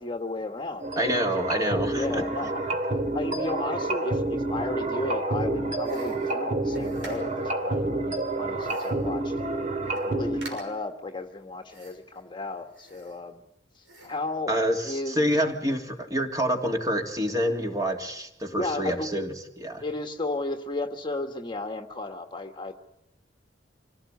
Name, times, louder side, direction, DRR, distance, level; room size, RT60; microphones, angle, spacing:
voice 1, 0.0-1.2 1.5-2.6 3.1-9.3 9.9-13.4 13.7-14.6 14.8-15.3 18.5-19.1 19.8-22.7, left 2 dB, 25° left, 5 dB, 1.6 m, -34 dB
sound 1, 0.8-10.5, right 2 dB, 40° right, 2.9 m, -29 dB
voice 2, 1.0-2.2 14.5-14.8 15.1-19.8, equal, 20° right, 3 dB, 2.9 m, -27 dB
sound 2, 5.8-7.5 8.6-9.1 9.5-9.6 9.8-10.1 10.4-10.9 11.7-12.2 12.7-13.5 13.8-14.3, right 2 dB, 85° right, 6.2 m, -47 dB
26.0 x 17.5 x 9.4 m, 0.80 s
head